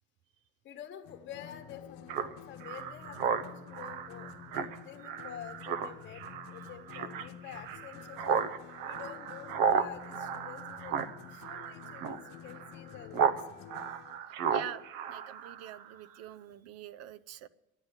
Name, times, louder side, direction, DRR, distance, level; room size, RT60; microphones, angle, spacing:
voice 1, 0.6-8.4 8.8-11.0 11.3-13.5, left 9 dB, 35° left, 1.4 m, -48 dB
sound 1, 1.0-14.2, left 9 dB, 75° left, 0.9 m, -50 dB
Speech synthesizer, 2.1-13.4 13.7-15.9, right 7 dB, 80° right, 1.0 m, -34 dB
voice 2, 14.5-17.5, right 11 dB, 50° right, 0.5 m, -45 dB
12.0 x 9.7 x 8.1 m
cardioid pair, 170°, 32 cm